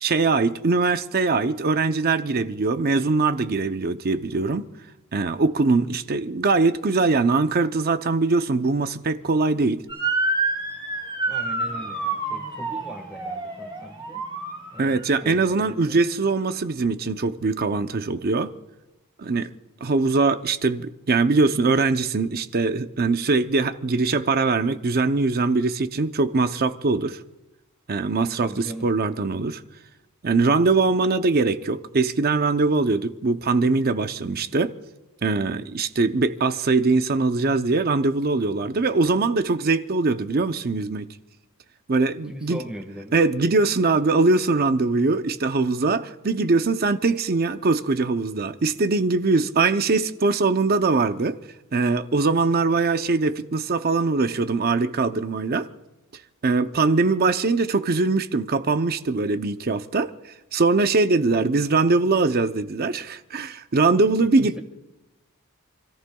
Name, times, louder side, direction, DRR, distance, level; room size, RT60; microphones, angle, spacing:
voice 1, 0.0-4.7 5.1-9.8 14.8-18.5 19.2-19.5 19.8-27.2 27.9-29.6 30.2-34.7 35.2-41.1 41.9-42.6 43.1-51.4 51.7-55.7 56.4-60.1 60.5-64.6, right 3 dB, 45° right, 0.6 m, -22 dB
Motor vehicle (road) / Siren, 9.9-15.1, right 3 dB, 20° right, 2.6 m, -28 dB
voice 2, 11.3-14.2 14.7-16.0 28.4-28.9 42.3-43.2 64.4-64.6, equal, 5° right, 1.6 m, -39 dB
29.5 x 14.5 x 2.3 m
head